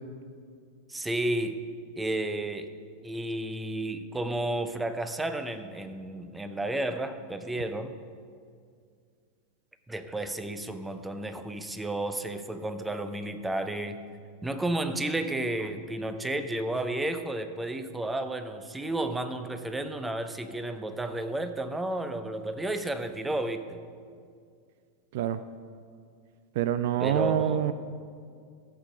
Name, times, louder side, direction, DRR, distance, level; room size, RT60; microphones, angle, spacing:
voice 1, 0.9-1.6 2.0-2.7 3.0-7.9 9.9-14.0 14.4-23.8 27.0-27.7, right 1 dB, 10° right, 9 dB, 0.8 m, -32 dB
voice 2, 26.6-27.7, right 10 dB, 50° right, 12 dB, 0.4 m, -26 dB
14.0 x 7.8 x 5.2 m, 2.2 s
figure-of-eight pair, 90°, 0 cm